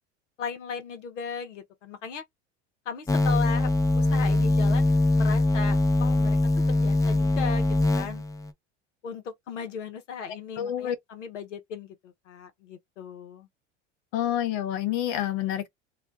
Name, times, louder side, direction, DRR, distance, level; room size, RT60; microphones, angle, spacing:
voice 1, 0.4-2.2 2.9-3.7 4.0-8.2 9.0-13.5, left 6 dB, 85° left, 1.0 m, -37 dB
sound 1, 3.1-8.5, left 2 dB, 10° left, 0.5 m, -23 dB
voice 2, 10.3-11.0 14.1-15.7, left 11 dB, 65° left, 0.9 m, -28 dB
2.5 x 2.2 x 3.7 m
hypercardioid pair, 80°, 35 cm